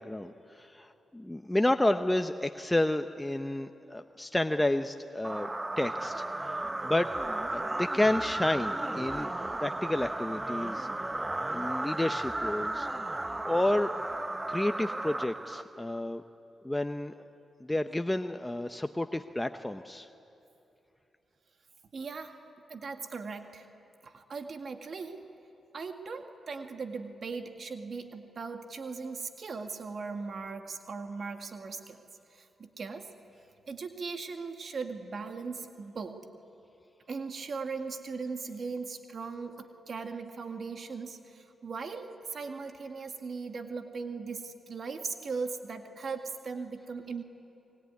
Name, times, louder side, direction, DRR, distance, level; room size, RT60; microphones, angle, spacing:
voice 1, 0.0-5.5 5.8-7.1 7.4-12.9 13.2-13.9 14.5-16.2 16.6-17.1 17.6-20.1, left 1 dB, 10° left, 7 dB, 0.9 m, -31 dB
sound 1, 5.2-16.0, right 2 dB, 20° right, 0.9 m, -34 dB
voice 2, 21.9-22.4 22.7-23.7 24.0-25.2 25.7-32.0 32.3-33.1 33.7-36.2 37.1-47.2, right 4 dB, 60° right, 5 dB, 1.9 m, -39 dB
27.5 x 22.0 x 9.6 m, 2.9 s
cardioid pair, 60°, 0 cm